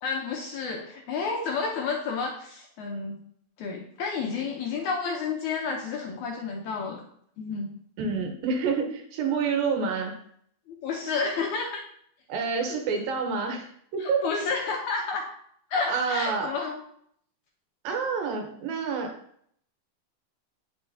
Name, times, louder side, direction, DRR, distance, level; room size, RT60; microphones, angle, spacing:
voice 1, 0.0-3.2 3.6-7.0 7.4-7.7 10.7-11.8 14.0-15.2 15.7-16.8, left 4 dB, 70° left, 0 dB, 1.9 m, -30 dB
voice 2, 8.0-10.2 12.3-14.2 15.9-16.5 17.8-19.1, right 5 dB, 75° right, 3 dB, 2.8 m, -28 dB
8.9 x 6.7 x 2.8 m, 0.66 s
omnidirectional pair, 4.2 m